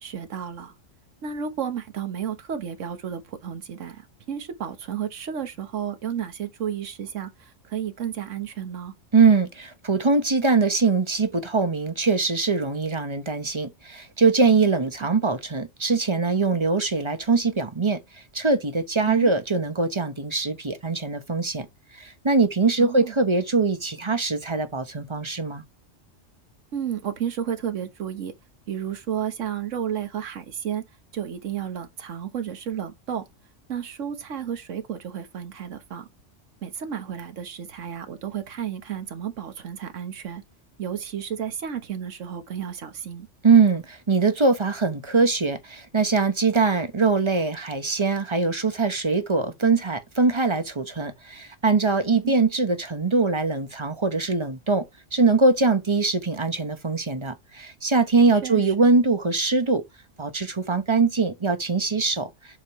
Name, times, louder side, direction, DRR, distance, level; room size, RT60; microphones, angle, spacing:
voice 1, 0.0-0.7 1.2-8.9 19.1-19.3 22.8-23.1 26.7-28.3 28.7-30.8 31.1-33.3 33.7-36.1 36.6-40.4 40.8-43.3 52.2-52.3 58.4-58.7, right 8 dB, 80° right, 1.5 m, -32 dB
voice 2, 9.1-18.0 18.3-21.7 21.9-25.6 43.4-54.8 55.1-59.8 60.2-62.3, right 4 dB, 25° right, 1.0 m, -22 dB
7.3 x 5.3 x 3.1 m
omnidirectional pair, 1.3 m